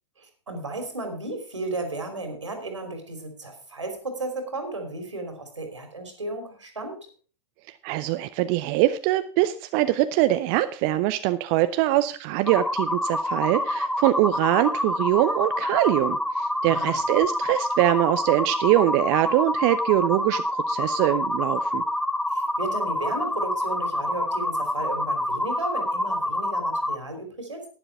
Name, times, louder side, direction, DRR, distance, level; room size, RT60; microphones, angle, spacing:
voice 1, 0.2-7.0 16.6-17.0 22.3-27.7, right 2 dB, 80° right, 6 dB, 3.3 m, -34 dB
voice 2, 7.8-21.8, right 15 dB, 40° right, 11 dB, 0.6 m, -23 dB
sound 1, 12.5-27.0, left 1 dB, 5° left, 0.7 m, -27 dB
11.5 x 10.0 x 4.6 m, 0.40 s
figure-of-eight pair, 90°, 15 cm